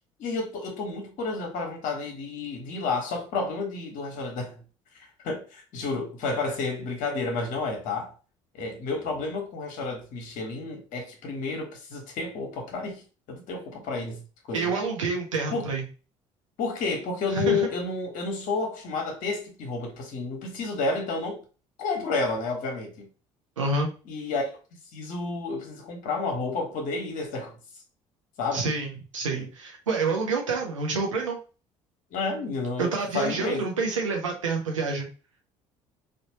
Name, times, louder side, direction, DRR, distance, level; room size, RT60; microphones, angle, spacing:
voice 1, 0.2-4.6 5.2-8.1 8.5-13.0 13.3-14.2 14.5-14.7 15.5-15.7 16.6-21.4 21.8-23.1 24.1-24.5 24.9-27.6 28.4-28.7 29.3-29.5 32.1-33.7, left 3 dB, 60° left, 1.1 m, -30 dB
voice 2, 14.5-15.8 17.3-17.7 23.6-23.9 28.5-31.4 32.8-35.1, right 4 dB, 85° right, 0.8 m, -28 dB
3.4 x 2.5 x 2.9 m
figure-of-eight pair, 55°, 16 cm